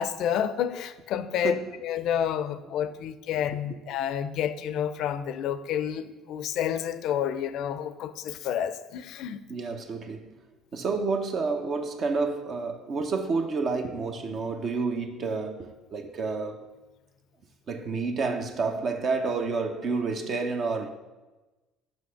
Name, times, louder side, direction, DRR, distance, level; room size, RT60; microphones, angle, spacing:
voice 1, 0.0-9.4, left 9 dB, 65° left, 0.5 m, -29 dB
voice 2, 1.4-1.7 9.5-10.3 10.7-16.6 17.7-20.9, right 4 dB, 50° right, 0.9 m, -29 dB
6.3 x 5.3 x 5.7 m
hypercardioid pair, 65°, 0 cm